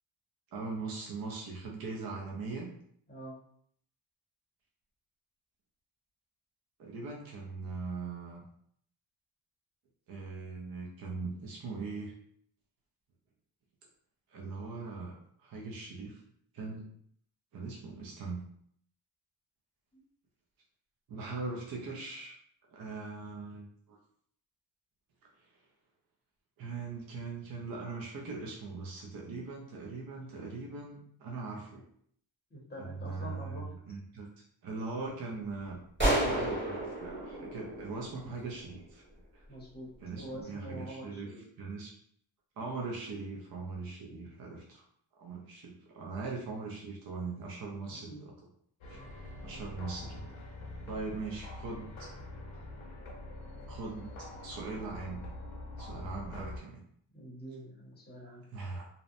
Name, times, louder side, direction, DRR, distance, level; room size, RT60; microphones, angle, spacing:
voice 1, 0.5-2.7 6.8-8.4 10.1-12.1 14.3-16.2 16.5-16.8 17.5-18.4 21.1-22.4 22.7-24.0 25.4-25.5 26.6-31.8 32.8-34.3 34.6-39.0 39.3-39.4 40.0-41.9 42.6-44.8 45.1-48.3 48.9-49.0 49.4-50.3 50.9-51.9 53.7-55.2 55.8-56.8 58.5-58.8, right 3 dB, 50° right, -1 dB, 0.5 m, -40 dB
voice 2, 32.5-33.7 39.5-41.5 47.9-48.2 57.1-58.4, equal, 20° left, -3 dB, 0.7 m, -45 dB
sound 1, 36.0-38.6, right 1 dB, 25° right, 1.1 m, -31 dB
sound 2, 48.8-56.6, left 1 dB, 75° left, 0.7 m, -45 dB
2.7 x 2.1 x 2.5 m, 0.64 s
wide cardioid pair, 150°, 49 cm